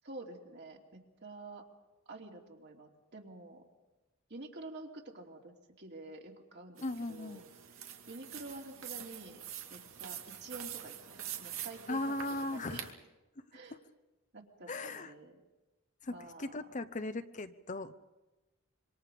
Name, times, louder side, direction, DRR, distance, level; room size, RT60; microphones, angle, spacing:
voice 1, 0.0-1.6 2.1-3.6 4.3-7.5 7.8-9.4 9.7-12.2 12.5-12.8 13.5-13.8 14.3-15.4 16.1-16.6, right 2 dB, 55° right, 1 dB, 3.0 m, -49 dB
voice 2, 6.8-7.4 11.9-12.9 14.7-15.1 16.0-17.9, left 2 dB, 40° left, 11 dB, 0.9 m, -38 dB
sound 1, 6.8-12.9, right 9 dB, 90° right, 2.4 m, -45 dB
26.5 x 25.0 x 5.3 m, 1.1 s
head